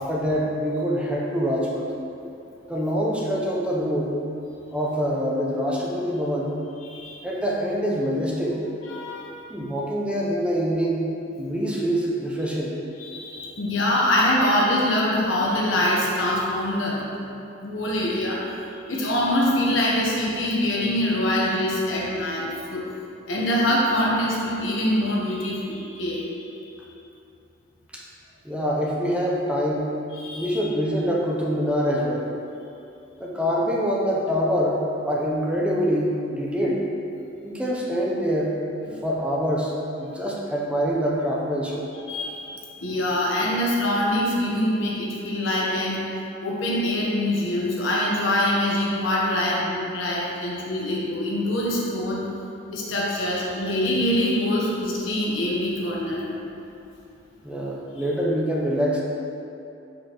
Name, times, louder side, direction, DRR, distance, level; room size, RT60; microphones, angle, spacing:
voice 1, 0.0-1.9 2.7-4.1 4.7-6.6 7.2-8.6 9.5-11.1 11.4-12.8 27.9-28.0 28.4-29.9 30.3-32.3 33.2-36.8 37.4-38.6 39.0-39.7 40.0-41.9 57.4-59.0, equal, 5° right, -4 dB, 0.6 m, -25 dB
voice 2, 6.8-7.2 8.8-9.3 13.0-17.0 17.6-18.5 18.9-22.8 23.3-26.6 30.1-30.6 38.9-39.0 41.9-42.5 42.8-46.0 46.4-52.2 52.7-56.3, left 1 dB, 80° left, -4 dB, 1.1 m, -24 dB
6.1 x 5.1 x 3.0 m, 2.7 s
head